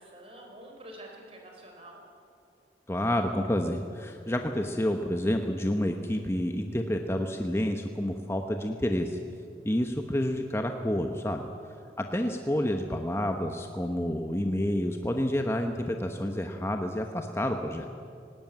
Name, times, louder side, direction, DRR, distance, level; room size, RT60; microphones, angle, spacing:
voice 1, 0.0-2.1 12.6-12.7, right 1 dB, 35° right, 1 dB, 4.3 m, -48 dB
voice 2, 2.9-9.2 9.6-11.5 12.0-17.9, left 1 dB, 15° left, 4 dB, 0.9 m, -29 dB
18.5 x 18.0 x 9.2 m, 2.4 s
head